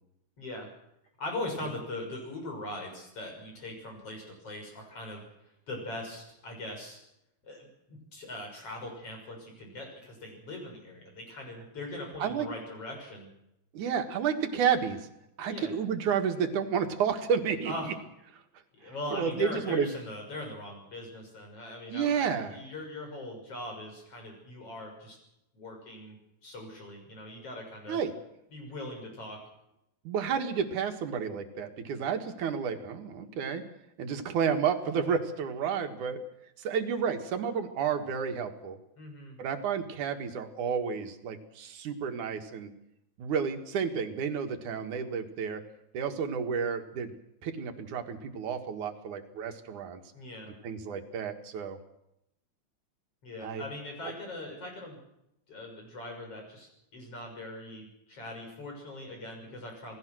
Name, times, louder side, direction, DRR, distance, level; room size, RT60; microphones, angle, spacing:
voice 1, 0.4-0.7 1.2-5.2 5.7-7.0 7.4-13.3 15.4-15.7 17.7-17.9 18.8-25.2 25.5-26.2 26.4-28.0 28.5-29.4 39.0-39.4 50.1-50.5 53.2-55.0 55.5-60.0, left 1 dB, 50° left, 2 dB, 7.4 m, -41 dB
voice 2, 13.7-15.1 15.4-17.7 18.8-19.9 21.9-22.6 27.9-28.1 30.0-33.6 34.0-36.2 36.6-38.8 39.4-42.7 43.2-45.6 45.9-47.1 47.4-50.0 50.6-51.8 53.4-53.6, right 7 dB, 80° right, 5 dB, 3.2 m, -31 dB
28.0 x 18.5 x 6.3 m, 0.84 s
omnidirectional pair, 3.4 m